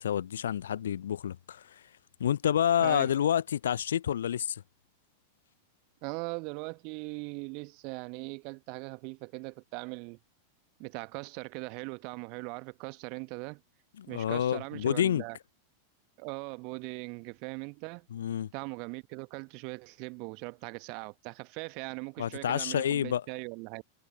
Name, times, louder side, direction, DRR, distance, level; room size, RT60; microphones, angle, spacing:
voice 1, 0.0-1.8 2.2-4.6 14.0-15.2 18.1-18.5 22.2-23.2, left 9 dB, 65° left, 0.7 m, -28 dB
voice 2, 6.0-10.2 10.8-13.6 14.1-15.4 16.2-18.1 18.5-23.8, right 33 dB, 45° right, 1.3 m, -40 dB
figure-of-eight pair, 90°, 0 cm